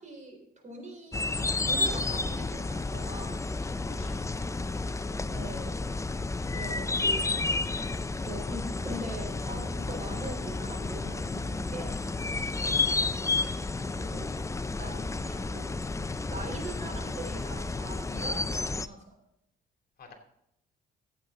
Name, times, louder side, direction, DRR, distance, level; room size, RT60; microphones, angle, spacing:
voice 1, 0.0-3.5 5.3-5.8 6.5-7.3 8.2-12.0 13.9-14.3 14.8-15.7 16.0-19.2, right 1 dB, 35° right, 3 dB, 4.1 m, -42 dB
sound 1, 1.1-18.9, left 3 dB, 15° left, 0.5 m, -31 dB
voice 2, 3.9-4.2 12.6-13.1 20.0-20.1, left 4 dB, 50° left, 2 dB, 2.8 m, -51 dB
15.0 x 8.4 x 3.8 m, 0.78 s
cardioid pair, 90°, 20 cm